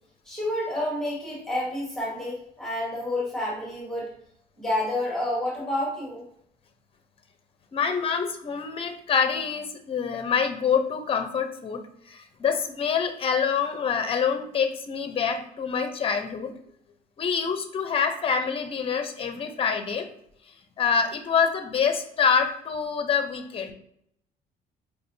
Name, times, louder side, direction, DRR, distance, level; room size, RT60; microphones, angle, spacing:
voice 1, 0.2-4.1 4.6-6.2, left 1 dB, 5° left, -6 dB, 1.4 m, -29 dB
voice 2, 7.7-16.5 17.2-20.1 20.5-23.7, left 6 dB, 35° left, 6 dB, 0.6 m, -26 dB
4.7 x 2.7 x 2.6 m, 0.71 s
cardioid pair, 110°, 17 cm